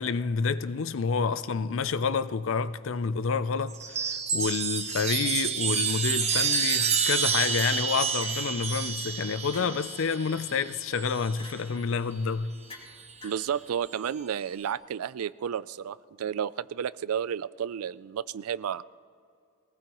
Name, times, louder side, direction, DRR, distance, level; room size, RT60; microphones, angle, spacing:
voice 1, 0.0-12.6, left 5 dB, 60° left, 0.5 m, -29 dB
Chime, 3.7-11.5 12.8-13.4, right 6 dB, 30° right, 1.0 m, -29 dB
sound 1, 6.2-6.9 8.2-8.6 9.5-9.9 11.4-11.7 12.7-13.0 13.2-13.5, left 2 dB, 25° left, 2.9 m, -47 dB
voice 2, 13.2-18.8, right 8 dB, 80° right, 0.4 m, -32 dB
22.5 x 18.5 x 3.0 m
head